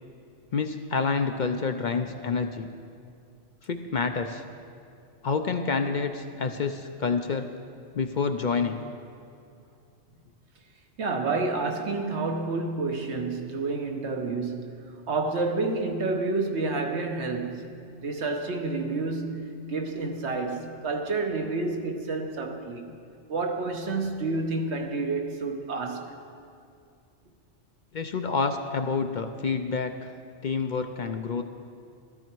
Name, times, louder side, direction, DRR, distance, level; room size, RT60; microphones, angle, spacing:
voice 1, 0.5-2.7 3.6-4.4 5.2-7.5 7.9-8.8 27.9-30.1 30.4-31.4, left 5 dB, 55° left, 0.6 m, -28 dB
voice 2, 11.0-17.7 18.0-22.9 23.3-26.1, right 3 dB, 65° right, 1.3 m, -29 dB
14.0 x 13.0 x 4.6 m
omnidirectional pair, 1.2 m